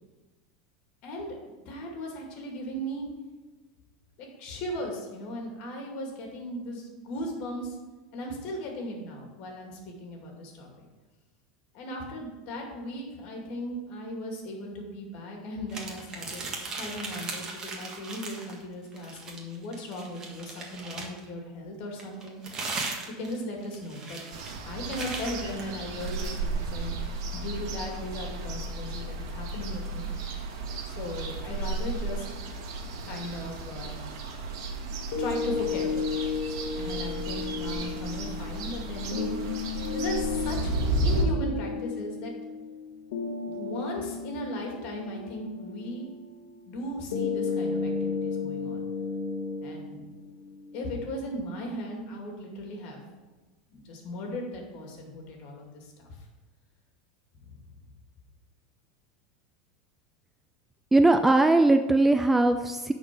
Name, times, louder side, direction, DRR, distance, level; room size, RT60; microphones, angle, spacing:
voice 1, 1.0-1.4 1.7-3.1 4.2-7.8 8.1-10.9 11.7-22.4 23.2-24.2 24.7-30.5 30.8-32.2 33.0-34.0 35.2-36.3 36.8-39.4 39.9-42.3 43.6-46.1 46.7-48.8 49.6-50.0 50.7-53.0 53.7-55.9 57.3-57.6, left 1 dB, 50° left, 1 dB, 2.4 m, -37 dB
sound 1, 15.7-18.6 18.9-21.3 22.0-26.4, right 3 dB, 25° right, 1.6 m, -38 dB
sound 2, 24.3-41.2, right 2 dB, 75° right, 1.5 m, -33 dB
sound 3, 35.1-51.1, left 5 dB, 80° left, 1.4 m, -34 dB
voice 2, 60.9-62.9, right 2 dB, 10° right, 7 dB, 0.3 m, -20 dB
9.8 x 4.5 x 6.1 m, 1.2 s
supercardioid pair, 140°, 2 cm